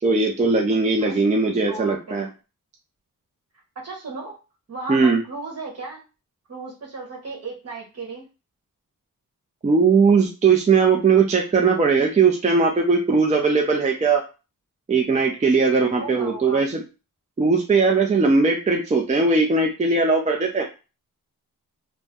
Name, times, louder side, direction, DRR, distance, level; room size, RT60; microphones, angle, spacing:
voice 1, 0.0-2.3 4.9-5.2 9.6-14.2 14.9-16.8 17.4-20.6, right 4 dB, 20° right, 0 dB, 0.4 m, -19 dB
voice 2, 1.7-2.3 3.8-4.4 4.7-6.0 6.5-8.2 16.0-16.6, right 3 dB, 45° right, -2 dB, 1.1 m, -35 dB
2.6 x 2.0 x 3.5 m, 0.31 s
wide cardioid pair, 125°, 34 cm